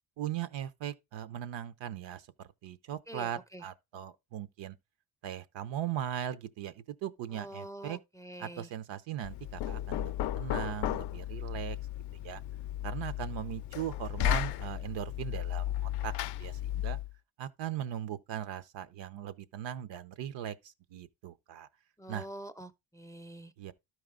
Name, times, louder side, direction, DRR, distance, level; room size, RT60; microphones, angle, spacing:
voice 1, 0.2-4.8 5.2-8.0 8.4-11.8 12.1-12.4 12.8-16.1 16.4-17.0 17.4-21.7 22.1-22.3 23.6-23.7, right 10 dB, 75° right, 0.9 m, -39 dB
voice 2, 3.1-3.7 7.3-8.7 22.0-23.5, right 1 dB, 10° left, 0.5 m, -45 dB
Knock, 9.2-17.1, left 12 dB, 65° left, 0.5 m, -34 dB
12.5 x 4.7 x 3.7 m
cardioid pair, 115°, 44 cm